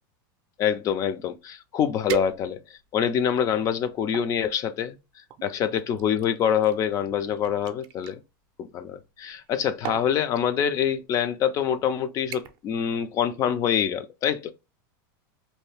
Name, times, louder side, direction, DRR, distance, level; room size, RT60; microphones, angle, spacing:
voice 1, 0.6-2.6 2.9-5.0 5.4-8.2 8.6-14.5, left 8 dB, 30° left, 0.3 m, -25 dB
sound 1, 1.4-1.5 2.1-2.9 3.5-4.3 5.3-8.2 9.3-9.5 9.8-10.2 11.0-11.2 11.6-11.9 12.3-12.7 13.0-13.4 13.8-13.9, right 8 dB, 40° right, 0.4 m, -37 dB
2.6 x 2.3 x 3.2 m
supercardioid pair, 150°, 12 cm